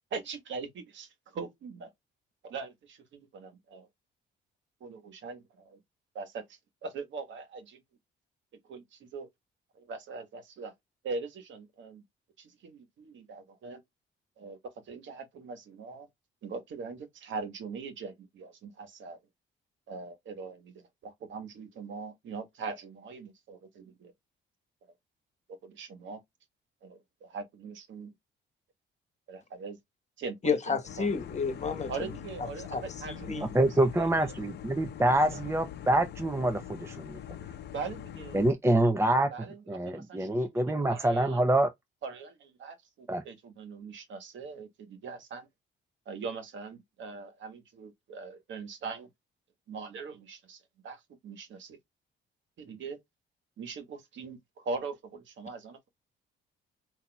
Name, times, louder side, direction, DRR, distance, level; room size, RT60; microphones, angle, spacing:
voice 1, 0.1-1.9 2.4-3.9 4.8-5.8 6.1-7.8 8.6-9.3 9.8-10.7 11.0-12.0 12.4-13.8 14.4-16.1 16.4-19.2 19.9-24.1 25.6-26.2 26.8-28.1 29.3-29.8 30.2-31.1 31.9-34.3 35.3-35.5 37.7-38.5 39.3-40.6 40.9-41.4 42.0-45.5 46.0-49.1 49.7-51.8 52.6-53.0 53.6-55.9, right 4 dB, 70° right, 1.4 m, -41 dB
voice 2, 30.4-31.9 32.7-33.5, left 5 dB, 35° left, 1.2 m, -31 dB
sound 1, 30.9-38.5, left 10 dB, 60° left, 0.6 m, -43 dB
voice 3, 33.4-37.2 38.3-39.3 39.7-41.7 43.1-43.2, right 1 dB, 15° right, 0.6 m, -26 dB
5.8 x 2.8 x 2.3 m
cardioid pair, 90°, 20 cm